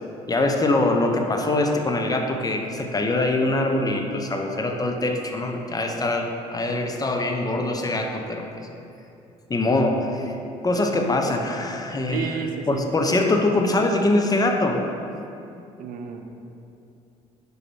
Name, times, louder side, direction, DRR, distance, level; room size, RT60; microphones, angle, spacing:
voice 1, 0.3-8.6 9.5-10.3 10.6-12.3 12.7-14.8, left 2 dB, 25° left, 3 dB, 0.9 m, -23 dB
voice 2, 12.1-12.8 15.8-16.2, right 6 dB, 65° right, 4 dB, 0.7 m, -30 dB
5.0 x 4.9 x 6.3 m, 2.8 s
hypercardioid pair, 60°, 16 cm